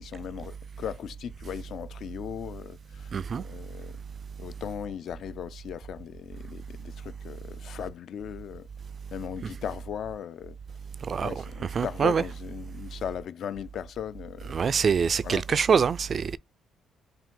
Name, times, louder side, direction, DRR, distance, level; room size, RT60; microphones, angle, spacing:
voice 1, 0.0-4.0 4.4-8.7 9.1-10.6 11.1-14.8 15.2-15.5, left 9 dB, 65° left, 0.4 m, -38 dB
voice 2, 3.1-3.4 11.1-11.3 11.7-12.2 14.5-16.4, right 6 dB, 45° right, 0.3 m, -24 dB
4.7 x 2.7 x 3.8 m
cardioid pair, 90°, 0 cm